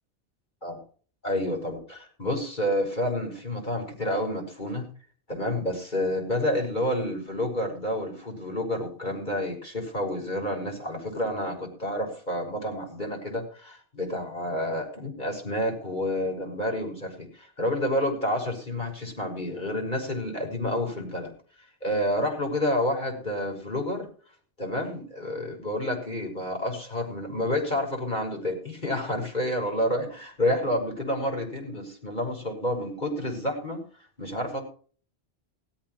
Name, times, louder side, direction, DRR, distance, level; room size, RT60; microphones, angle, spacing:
voice 1, 1.2-4.9 5.3-21.3 21.8-24.1 24.6-33.8 34.2-34.6, left 1 dB, 45° left, 1 dB, 6.5 m, -29 dB
16.5 x 16.0 x 3.2 m, 0.42 s
omnidirectional pair, 1.1 m